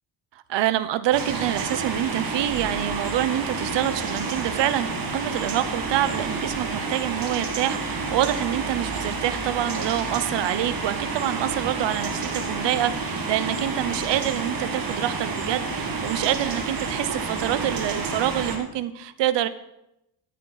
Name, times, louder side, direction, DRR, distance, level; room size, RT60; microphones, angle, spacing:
voice 1, 0.3-19.5, right 12 dB, 65° right, 14 dB, 0.8 m, -26 dB
sound 1, 1.1-18.6, right 4 dB, 50° right, 1.9 m, -29 dB
14.0 x 8.8 x 4.0 m, 0.86 s
cardioid pair, 140°, 46 cm